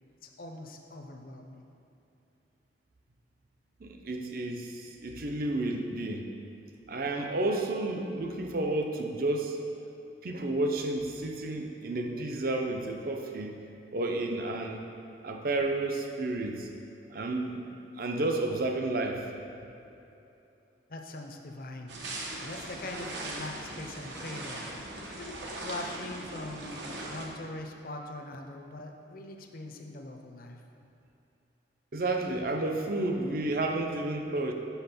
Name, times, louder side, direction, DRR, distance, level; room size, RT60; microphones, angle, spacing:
voice 1, 0.2-1.7 20.9-21.9 22.4-24.6 25.2-30.6, left 2 dB, 50° left, 3 dB, 0.7 m, -42 dB
voice 2, 3.8-6.3 6.9-9.6 10.2-13.6 13.9-14.8 15.2-16.7 17.1-17.7 18.0-19.3 31.9-34.5, right 2 dB, 50° right, 3 dB, 0.6 m, -31 dB
sound 1, 21.9-27.3, right 1 dB, 80° right, 1.1 m, -40 dB
6.0 x 5.6 x 5.9 m, 2.9 s
head